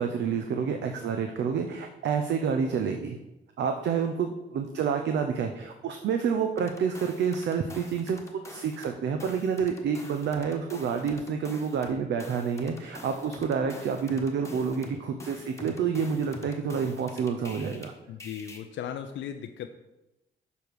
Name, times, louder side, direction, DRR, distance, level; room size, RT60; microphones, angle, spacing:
voice 1, 0.0-3.2 3.6-8.2 8.5-17.9, right 6 dB, 65° right, 5 dB, 0.6 m, -28 dB
sound 1, 6.6-8.9 9.2-17.9 18.2-18.6, left 1 dB, 15° left, 1.2 m, -45 dB
voice 2, 18.1-19.7, left 9 dB, 70° left, 6 dB, 0.5 m, -37 dB
7.0 x 5.0 x 4.7 m, 0.97 s
cardioid pair, 90°, 20 cm